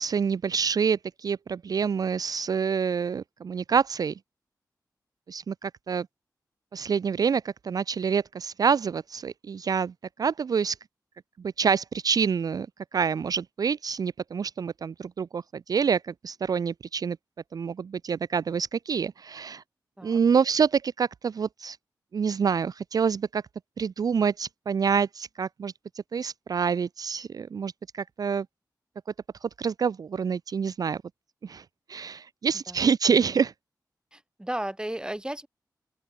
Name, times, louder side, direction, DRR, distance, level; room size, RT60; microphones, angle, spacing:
voice 1, 0.0-4.2 5.3-6.1 6.7-9.9 10.2-10.8 11.4-12.7 12.9-17.2 17.5-19.6 20.0-21.8 22.1-23.4 23.8-25.7 26.1-28.5 29.4-31.0 31.4-33.5, right 6 dB, 60° right, 0.4 m, -27 dB
voice 2, 34.1-35.5, right 1 dB, 10° right, 2.8 m, -34 dB
open air
cardioid pair, 65°, 7 cm